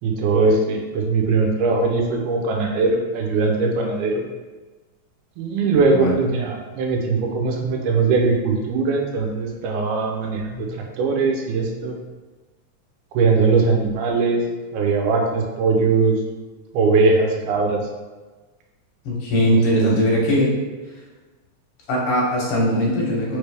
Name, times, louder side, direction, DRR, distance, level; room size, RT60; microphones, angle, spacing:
voice 1, 0.0-4.2 5.4-11.9 13.1-14.4 14.7-16.2 16.7-17.8 19.5-19.9, right 4 dB, 90° right, 1 dB, 2.2 m, -20 dB
voice 2, 19.0-20.5 21.9-23.4, equal, 65° left, -4 dB, 1.5 m, -20 dB
4.7 x 3.3 x 3.3 m, 1.3 s
omnidirectional pair, 3.5 m